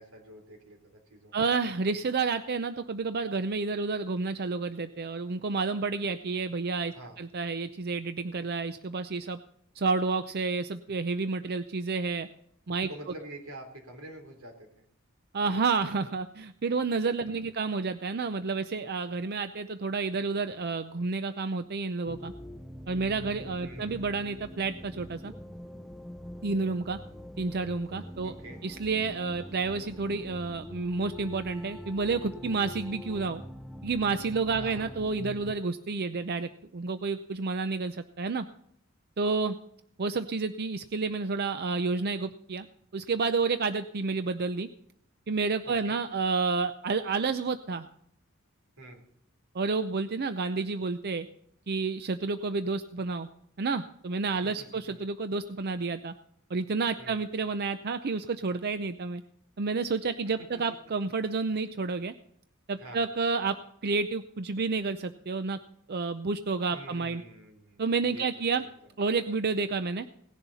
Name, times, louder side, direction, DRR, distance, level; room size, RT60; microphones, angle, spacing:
voice 1, 0.0-1.5 6.9-7.2 12.9-14.8 17.2-17.5 23.6-24.2 28.2-28.6 34.6-34.9 45.6-46.0 48.8-49.0 54.3-55.0 57.0-57.2 62.8-63.0 66.7-68.2 68.5-68.9, right 1 dB, 85° right, 4 dB, 3.6 m, -47 dB
voice 2, 1.3-9.4 9.8-12.3 12.7-12.9 15.3-22.3 22.9-25.3 26.4-27.0 27.4-28.3 28.6-33.4 33.8-38.5 39.2-39.6 40.0-42.7 42.9-44.7 45.3-47.9 49.5-51.3 51.7-53.3 53.6-56.1 56.5-59.2 59.6-62.1 62.7-63.6 63.8-65.6 65.9-67.2 67.8-68.6 69.0-70.1, right 4 dB, 50° right, 10 dB, 0.6 m, -30 dB
sound 1, 22.1-35.5, equal, ahead, 0.6 m, -44 dB
18.0 x 11.0 x 4.2 m, 0.68 s
head